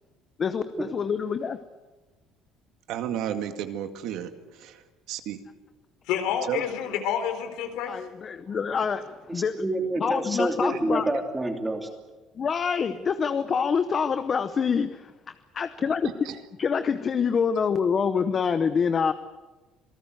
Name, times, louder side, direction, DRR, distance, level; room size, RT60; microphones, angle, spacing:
voice 1, 0.4-1.6 7.9-9.6 10.0-11.1 12.4-15.1 15.5-16.1 16.6-19.1, left 6 dB, 25° left, 10 dB, 0.8 m, -26 dB
voice 2, 2.9-5.4 6.5-6.6 10.7-10.8 16.0-16.4, right 10 dB, 65° right, 7 dB, 2.1 m, -33 dB
voice 3, 6.1-7.9, left 9 dB, 85° left, 7 dB, 4.1 m, -28 dB
voice 4, 9.3-11.9, right 1 dB, 10° right, 3 dB, 2.9 m, -28 dB
27.0 x 19.0 x 8.0 m, 1.2 s
cardioid pair, 170°, 0 cm